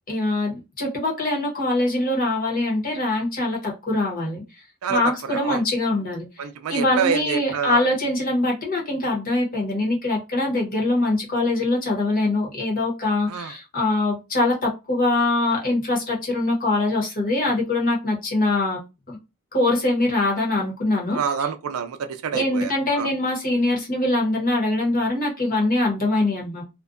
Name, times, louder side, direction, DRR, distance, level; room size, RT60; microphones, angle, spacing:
voice 1, 0.1-4.4 4.9-6.3 6.7-18.8 19.1-19.2 19.5-21.2 22.3-26.6, left 2 dB, 45° left, 0.9 m, -23 dB
voice 2, 5.3-5.6 6.4-7.8 13.3-13.5 21.1-23.1, right 7 dB, 85° right, 0.4 m, -27 dB
2.5 x 2.2 x 2.4 m
head